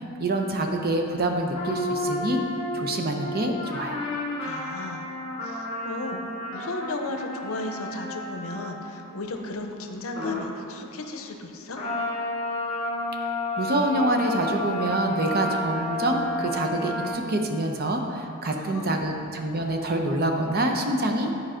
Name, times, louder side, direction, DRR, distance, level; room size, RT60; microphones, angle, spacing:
voice 1, 0.2-2.4 2.7-4.0 13.6-21.3, right 1 dB, 45° right, 3 dB, 0.7 m, -26 dB
sound 1, 1.5-9.0 10.1-10.5 11.7-17.1, left 1 dB, 30° left, 2.1 m, -31 dB
voice 2, 4.4-5.1 5.4-11.8 18.4-19.1, left 2 dB, 70° left, 4 dB, 0.7 m, -35 dB
10.0 x 4.7 x 5.0 m, 2.7 s
head